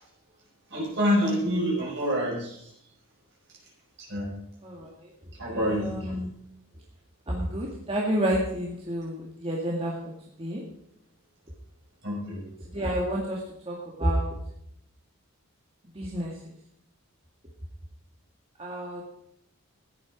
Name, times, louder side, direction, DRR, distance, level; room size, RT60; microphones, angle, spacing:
voice 1, 0.7-2.7 4.0-4.3 5.4-5.9 12.0-12.4, equal, 55° right, -2 dB, 5.8 m, -27 dB
voice 2, 4.6-5.1 5.5-6.3 7.3-9.9 10.4-10.6 12.7-13.4 13.7-14.3 16.0-16.3 18.6-19.0, equal, 25° right, -3 dB, 2.0 m, -29 dB
14.5 x 10.5 x 5.1 m, 0.74 s
head